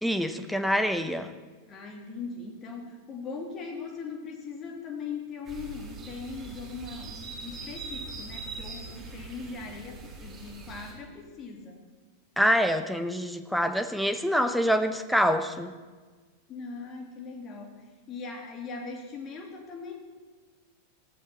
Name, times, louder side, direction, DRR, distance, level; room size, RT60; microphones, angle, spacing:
voice 1, 0.0-1.3 12.4-15.7, equal, ahead, 9 dB, 0.9 m, -26 dB
voice 2, 1.7-11.8 16.5-20.0, left 4 dB, 30° left, 2 dB, 2.9 m, -40 dB
sound 1, 5.4-10.9, right 3 dB, 20° right, 4.8 m, -42 dB
19.5 x 14.5 x 4.3 m, 1.4 s
figure-of-eight pair, 90°, 0 cm